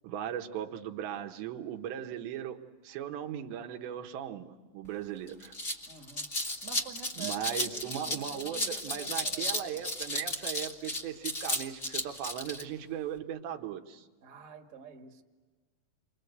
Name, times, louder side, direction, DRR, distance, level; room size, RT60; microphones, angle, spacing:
voice 1, 0.0-5.5 7.2-14.1, right 10 dB, 85° right, 5 dB, 3.5 m, -38 dB
sound 1, 4.8-4.9 5.3-12.6, left 1 dB, 50° left, 0.8 m, -34 dB
voice 2, 5.9-6.3 6.6-9.8 14.2-15.2, right 7 dB, 35° right, 3 dB, 1.4 m, -48 dB
30.0 x 24.5 x 8.1 m, 1.3 s
omnidirectional pair, 4.9 m